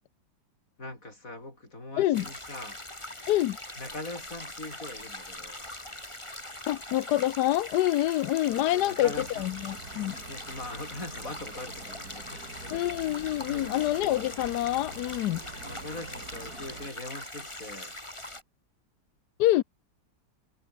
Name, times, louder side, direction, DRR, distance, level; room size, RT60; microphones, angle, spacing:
voice 1, 0.8-2.8 3.8-5.6 8.5-9.5 10.3-12.9 13.5-13.8 15.5-17.9, left 2 dB, 45° left, 7.2 m, -42 dB
sound 1, 2.1-18.4, left 1 dB, 15° left, 4.0 m, -42 dB
voice 2, 6.7-10.2 12.7-15.4 19.4-19.6, left 15 dB, 70° left, 1.1 m, -26 dB
sound 2, 9.1-16.9, right 3 dB, 50° right, 4.2 m, -46 dB
omnidirectional pair, 2.1 m